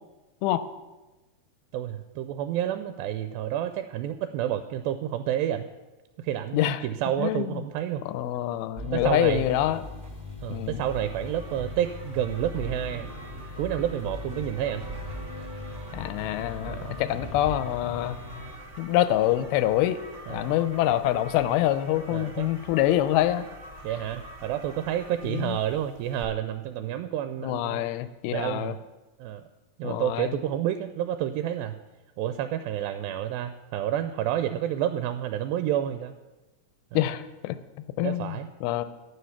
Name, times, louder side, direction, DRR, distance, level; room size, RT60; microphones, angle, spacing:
voice 1, 1.7-5.7 6.2-8.0 8.9-9.5 10.4-13.1 13.6-14.8 15.4-15.5 16.7-16.9 20.3-20.5 22.1-22.5 23.8-27.8 28.3-28.8 29.2-29.4 29.8-31.8 32.2-36.1 38.0-38.5, right 11 dB, 85° right, 9 dB, 2.3 m, -29 dB
voice 2, 6.5-6.9 7.2-7.6 8.1-9.8 10.5-10.8 15.9-18.2 18.8-20.0 20.3-23.5 25.2-25.6 27.4-28.7 29.8-30.3 36.9-37.6 38.0-38.9, left 13 dB, 90° left, 12 dB, 2.5 m, -26 dB
sound 1, 8.8-18.6, left 2 dB, 5° right, 1.5 m, -39 dB
sound 2, 9.2-26.2, right 1 dB, 25° right, 2.0 m, -47 dB
11.5 x 9.4 x 5.8 m, 1.1 s
omnidirectional pair, 4.3 m